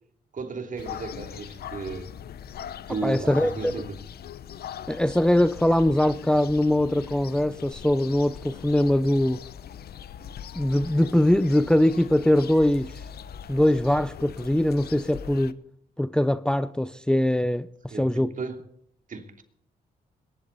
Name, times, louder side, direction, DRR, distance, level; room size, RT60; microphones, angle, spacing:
voice 1, 0.3-2.1 2.9-4.0 17.9-18.6 19.1-19.4, right 4 dB, 50° right, 2.9 m, -34 dB
sound 1, 0.8-15.5, left 9 dB, 65° left, 0.9 m, -41 dB
voice 2, 3.0-3.7 4.9-9.4 10.5-13.0 13.5-15.6 16.0-18.3, left 1 dB, 5° left, 0.6 m, -22 dB
22.0 x 11.5 x 4.1 m
cardioid pair, 80°, 17 cm